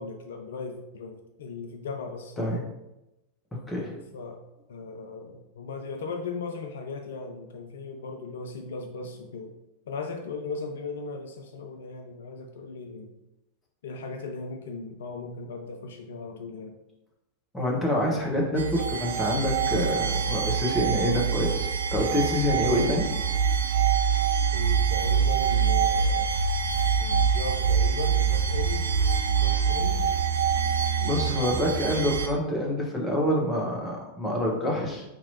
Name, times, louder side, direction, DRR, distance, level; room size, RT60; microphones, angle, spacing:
voice 1, 0.0-2.6 4.1-4.4 4.7-9.6 9.9-13.2 13.8-16.8 24.5-26.4 27.0-30.1 31.0-32.0, left 4 dB, 60° left, 5 dB, 0.3 m, -38 dB
voice 2, 17.5-23.1 31.0-35.0, left 1 dB, 10° left, -2 dB, 1.1 m, -27 dB
sound 1, 18.6-32.3, right 6 dB, 70° right, 0.4 m, -25 dB
4.4 x 2.9 x 2.7 m, 0.93 s
figure-of-eight pair, 90°, 0 cm